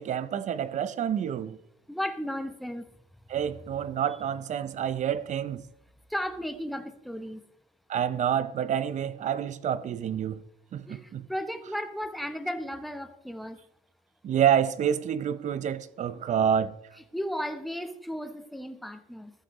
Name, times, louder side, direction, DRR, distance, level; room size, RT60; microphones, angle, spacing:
voice 1, 0.0-1.6 3.3-5.6 7.9-10.4 10.7-11.3 14.2-16.7, right 9 dB, 45° right, 0.6 m, -28 dB
voice 2, 1.9-2.8 6.1-7.4 10.9-13.6 17.1-19.3, equal, ahead, 0.9 m, -34 dB
14.0 x 7.6 x 3.1 m
cardioid pair, 110°, 17 cm